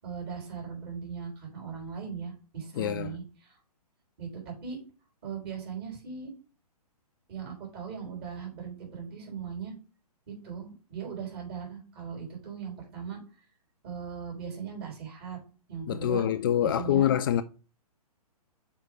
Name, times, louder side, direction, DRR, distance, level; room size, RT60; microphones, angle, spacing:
voice 1, 0.0-3.5 4.2-4.8 5.2-6.3 7.3-9.7 10.3-13.2 13.8-15.4 15.7-16.2 16.6-17.1, right 6 dB, 40° right, 4.7 m, -39 dB
voice 2, 2.7-3.2 15.9-17.4, left 10 dB, 35° left, 0.4 m, -25 dB
6.4 x 5.1 x 4.9 m
figure-of-eight pair, 125°, 20 cm